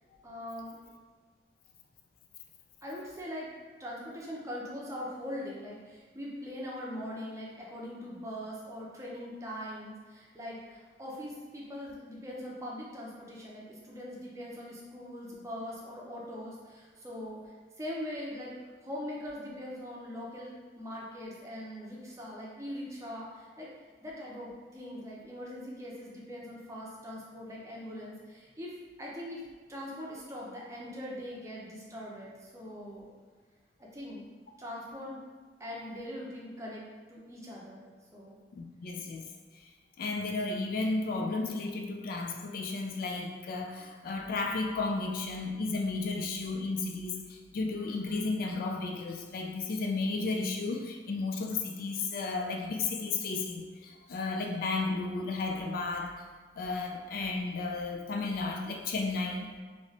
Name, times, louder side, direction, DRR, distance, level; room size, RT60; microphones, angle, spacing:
voice 1, 0.2-0.8 2.8-3.5 3.8-17.4 17.8-18.5 18.8-23.7 24.0-28.7 29.0-29.4 29.7-33.1 33.8-34.3 34.6-35.2 35.6-36.8 37.1-37.8 38.1-38.4, equal, 15° right, -5 dB, 0.6 m, -41 dB
voice 2, 38.5-39.3 39.5-39.7 40.0-56.1 56.6-59.6, left 3 dB, 55° left, 2 dB, 0.3 m, -33 dB
3.2 x 2.8 x 2.8 m, 1.5 s
head